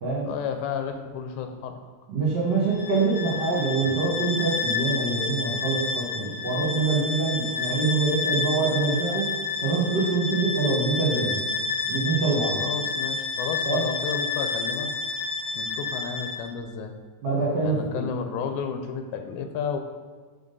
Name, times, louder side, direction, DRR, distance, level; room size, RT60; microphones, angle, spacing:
voice 1, 0.2-1.8 12.4-14.9 15.5-16.9 17.6-19.8, left 6 dB, 90° left, 6 dB, 2.1 m, -32 dB
voice 2, 2.1-9.2 9.6-11.4 11.9-12.6 13.6-13.8 17.2-18.0, right 3 dB, 50° right, -7 dB, 1.4 m, -25 dB
Bowed string instrument, 2.7-16.5, left 4 dB, 70° left, 2.5 m, -30 dB
6.0 x 3.7 x 5.3 m, 1.5 s
omnidirectional pair, 3.4 m